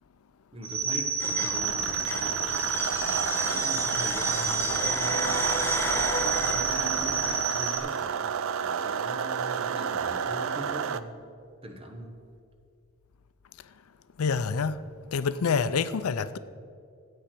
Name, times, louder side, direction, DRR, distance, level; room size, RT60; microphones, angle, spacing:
voice 1, 0.5-2.7 3.0-5.5 6.2-11.2 11.6-12.2, right 1 dB, 25° right, 1.2 m, -41 dB
sound 1, 0.6-7.8, right 6 dB, 45° right, 1.2 m, -29 dB
sound 2, 1.2-7.4, left 2 dB, 10° left, 0.6 m, -35 dB
sound 3, 1.5-11.0, right 7 dB, 65° right, 0.4 m, -31 dB
voice 2, 14.2-14.8 15.1-16.4, left 5 dB, 80° left, 0.5 m, -27 dB
15.0 x 8.5 x 4.5 m
head